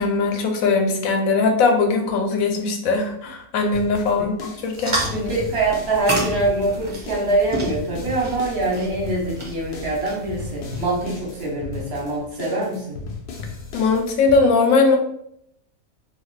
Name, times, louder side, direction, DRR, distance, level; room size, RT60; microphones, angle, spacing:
voice 1, 0.0-4.3 4.6-5.0 13.7-15.0, left 4 dB, 80° left, 3 dB, 1.0 m, -20 dB
sound 1, 3.7-14.4, left 3 dB, 60° left, 0.6 m, -36 dB
sound 2, 4.7-11.1, right 1 dB, 30° right, 0.7 m, -31 dB
voice 2, 5.1-13.0, right 2 dB, 55° right, -3 dB, 1.0 m, -24 dB
2.5 x 2.4 x 3.1 m, 0.72 s
omnidirectional pair, 1.4 m